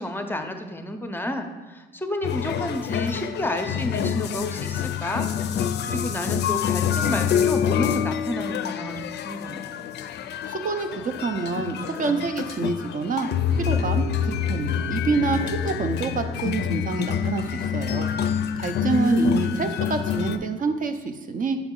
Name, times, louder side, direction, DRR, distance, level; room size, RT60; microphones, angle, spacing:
voice 1, 0.0-5.3 5.5-9.7 18.8-19.7, left 1 dB, 10° left, 6 dB, 0.6 m, -30 dB
sound 1, 2.2-20.4, left 8 dB, 60° left, 0.4 m, -27 dB
voice 2, 10.5-18.1 18.6-21.6, right 4 dB, 45° right, 8 dB, 0.6 m, -27 dB
7.0 x 4.0 x 3.7 m, 1.2 s
cardioid pair, 90°, 20 cm